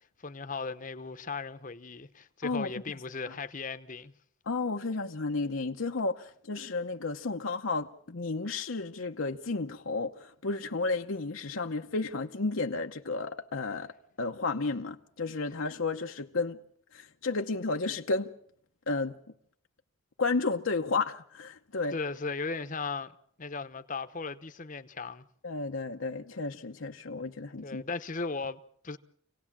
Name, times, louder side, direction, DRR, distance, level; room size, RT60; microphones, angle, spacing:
voice 1, 0.2-4.1 21.9-23.1 23.4-25.3 27.6-29.0, left 4 dB, 40° left, 0.9 m, -37 dB
voice 2, 4.5-13.9 14.2-16.6 16.9-18.3 18.9-19.2 20.2-22.0 25.4-27.8, left 3 dB, 70° left, 0.9 m, -32 dB
27.0 x 18.0 x 7.4 m
head